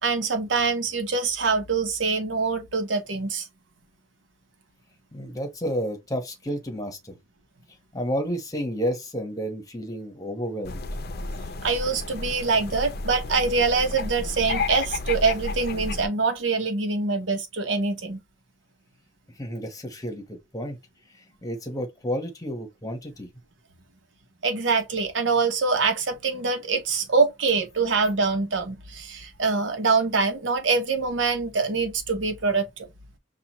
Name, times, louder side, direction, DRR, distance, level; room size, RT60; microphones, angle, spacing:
voice 1, 0.0-3.5 11.6-18.2 24.4-32.9, right 4 dB, 80° right, 1.0 m, -24 dB
voice 2, 5.1-7.2 7.9-10.8 19.3-20.8 21.1-23.3, equal, 20° left, 1.1 m, -31 dB
sound 1, 10.6-16.1, left 3 dB, 55° left, 0.6 m, -32 dB
5.7 x 2.4 x 3.0 m
head